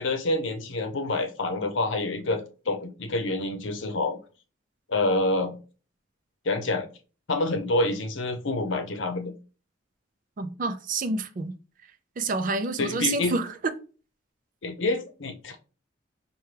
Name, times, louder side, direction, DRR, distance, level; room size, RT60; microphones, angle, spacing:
voice 1, 0.0-4.2 4.9-5.6 6.4-6.9 7.3-9.3 12.8-13.3 14.6-15.6, left 2 dB, 75° left, 0.7 m, -27 dB
voice 2, 10.4-11.5 12.2-13.7, right 3 dB, 45° right, 0.4 m, -28 dB
5.7 x 2.2 x 3.3 m
head